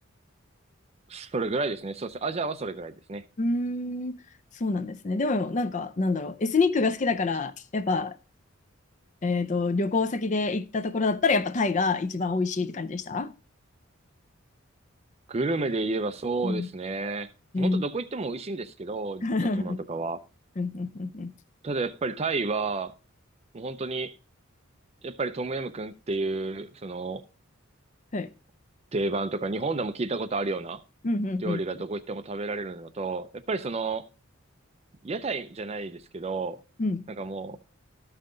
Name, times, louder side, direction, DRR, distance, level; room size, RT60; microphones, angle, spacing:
voice 1, 1.1-3.2 15.3-17.3 17.6-20.2 21.6-22.9 23.5-24.2 25.0-27.2 28.9-30.8 31.4-34.0 35.0-36.6 37.1-37.6, right 3 dB, 30° right, 0.4 m, -31 dB
voice 2, 3.4-4.1 4.5-8.2 9.2-13.3 16.4-16.7 17.5-17.8 19.2-19.8 20.6-21.3 28.1-28.3 31.0-31.6 36.8-37.1, left 3 dB, 35° left, 0.4 m, -27 dB
13.0 x 5.6 x 3.8 m
head